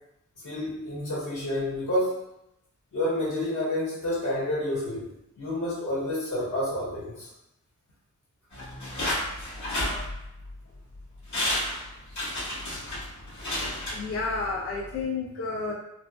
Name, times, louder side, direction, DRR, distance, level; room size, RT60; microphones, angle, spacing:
voice 1, 0.4-2.2 2.9-5.1 5.4-7.3, left 1 dB, 90° left, -10 dB, 1.4 m, -29 dB
sound 1, 8.5-10.5 11.0-11.1 11.3-14.5 14.8-14.9, left 1 dB, 70° left, 1.2 m, -31 dB
voice 2, 13.9-15.7, left 3 dB, 50° left, -4 dB, 0.4 m, -30 dB
2.7 x 2.1 x 2.2 m, 0.84 s
wide cardioid pair, 90°, 29 cm